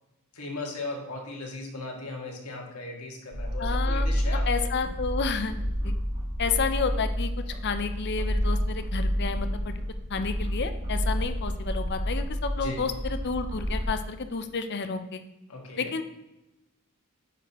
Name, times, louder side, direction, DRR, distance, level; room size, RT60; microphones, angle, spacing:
voice 1, 0.3-4.5 12.6-12.8 15.5-15.9, left 2 dB, 80° left, 0 dB, 1.9 m, -37 dB
sound 1, 3.3-13.8, equal, 40° right, 1.7 m, -29 dB
voice 2, 3.6-5.6 5.8-5.9 6.4-7.3 7.6-9.7 10.1-15.2 15.8-16.0, left 5 dB, 50° left, 9 dB, 0.6 m, -31 dB
9.0 x 6.3 x 3.0 m, 0.95 s
head